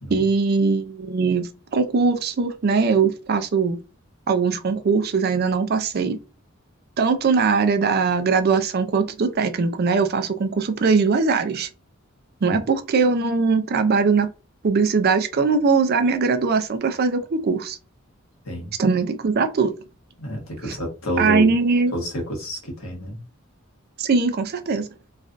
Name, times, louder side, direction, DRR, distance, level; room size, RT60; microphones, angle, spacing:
voice 1, 0.1-3.8 4.3-6.2 7.0-11.7 12.4-14.3 14.6-17.8 18.8-19.8 20.6-20.8 21.2-21.9 24.0-24.9, right 4 dB, 50° right, 0.4 m, -21 dB
voice 2, 20.2-21.5 21.9-23.2, equal, 85° left, 1.3 m, -29 dB
3.1 x 2.4 x 2.5 m
head